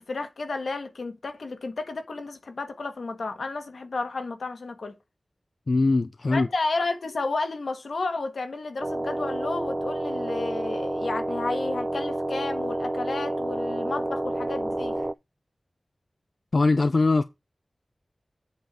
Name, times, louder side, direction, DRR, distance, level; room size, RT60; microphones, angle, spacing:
voice 1, 0.0-4.9 6.3-15.0, left 3 dB, 90° left, 1.4 m, -32 dB
voice 2, 5.7-6.5 16.5-17.2, left 3 dB, 60° left, 0.5 m, -21 dB
sound 1, 8.8-15.1, right 1 dB, 25° right, 0.3 m, -29 dB
8.1 x 4.5 x 4.8 m
wide cardioid pair, 65°, 0 cm